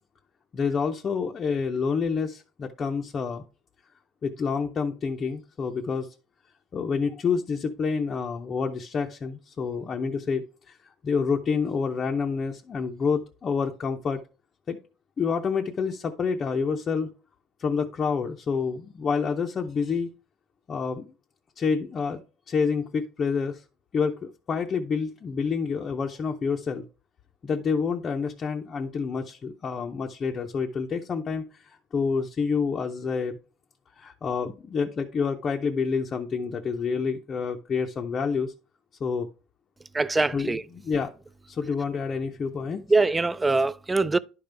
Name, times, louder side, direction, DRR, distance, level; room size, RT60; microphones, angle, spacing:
voice 1, 0.5-3.4 4.2-6.1 6.7-10.8 11.0-14.2 14.7-14.8 15.2-17.1 17.6-20.1 20.7-21.1 21.6-22.2 22.5-23.6 23.9-26.9 27.4-33.4 34.0-38.5 39.0-39.3 40.3-41.1 41.5-42.8, left 5 dB, 25° left, 0.6 m, -28 dB
voice 2, 39.9-40.6 42.9-44.2, right 3 dB, 10° right, 0.3 m, -23 dB
11.0 x 5.2 x 3.4 m
cardioid pair, 160°, 0 cm